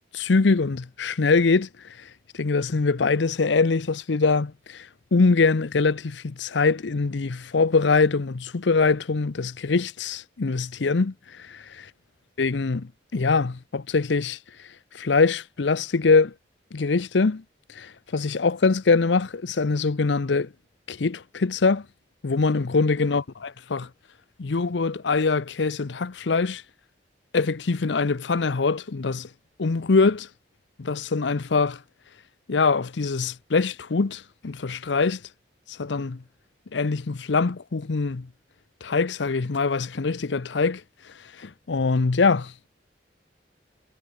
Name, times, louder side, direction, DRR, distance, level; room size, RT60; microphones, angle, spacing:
voice 1, 0.1-1.7 2.3-11.8 12.4-14.4 14.9-16.3 16.7-17.4 17.7-20.5 20.9-21.9 22.2-23.9 24.4-26.6 27.3-29.3 29.6-30.3 30.8-31.8 32.5-35.2 35.8-36.2 36.7-38.3 38.8-40.8 41.4-42.7, left 4 dB, 80° left, 0.7 m, -23 dB
head